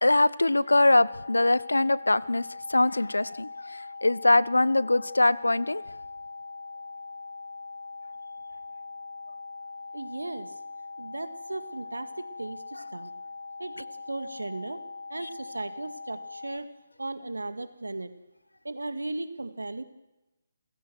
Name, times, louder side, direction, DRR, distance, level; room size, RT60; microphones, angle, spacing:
voice 1, 0.0-2.4 2.7-3.5 4.0-5.8, left 2 dB, 85° left, 21 dB, 0.8 m, -22 dB
sound 1, 0.7-16.6, left 3 dB, 65° left, 1.2 m, -41 dB
voice 2, 9.9-10.5 11.0-13.1 13.6-14.8 15.1-16.7 17.0-18.1 18.6-19.8, right 2 dB, 85° right, 11 dB, 2.0 m, -36 dB
28.5 x 16.0 x 6.2 m, 0.96 s
figure-of-eight pair, 145°, 0 cm